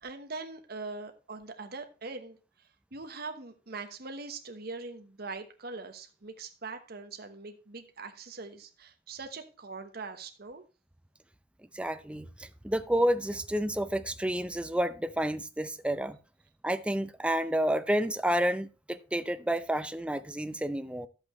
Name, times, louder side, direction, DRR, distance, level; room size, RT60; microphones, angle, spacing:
voice 1, 0.0-2.4 2.9-10.6, right 3 dB, 55° right, 1.2 m, -42 dB
voice 2, 11.7-16.2 16.6-21.1, right 1 dB, 5° right, 0.5 m, -30 dB
11.5 x 7.9 x 3.1 m
head